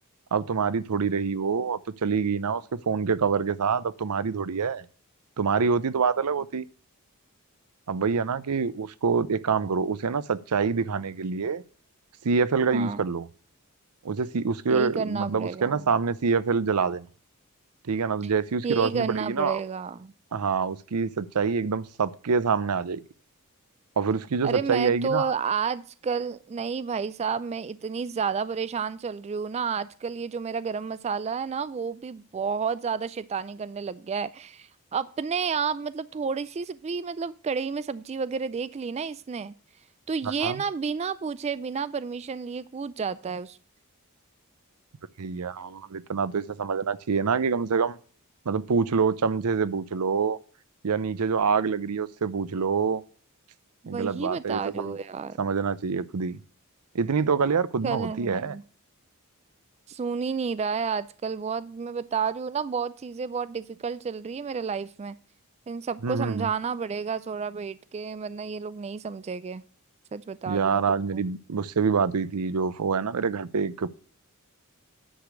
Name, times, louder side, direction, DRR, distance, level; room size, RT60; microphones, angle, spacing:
voice 1, 0.3-4.8 5.4-6.6 7.9-11.6 12.2-13.3 14.0-17.1 17.9-19.6 20.3-23.0 24.0-25.3 40.4-40.6 45.2-48.0 48.5-50.4 50.8-53.0 53.9-55.0 55.4-56.4 56.9-58.6 66.0-66.5 70.5-73.9, right 5 dB, 85° right, 0.6 m, -26 dB
voice 2, 12.7-13.0 14.7-15.8 18.6-20.1 24.4-39.5 40.1-43.6 53.8-55.4 57.8-58.6 59.9-65.2 65.7-69.6 70.1-71.2, right 5 dB, 30° right, 0.3 m, -31 dB
10.0 x 5.0 x 6.2 m
head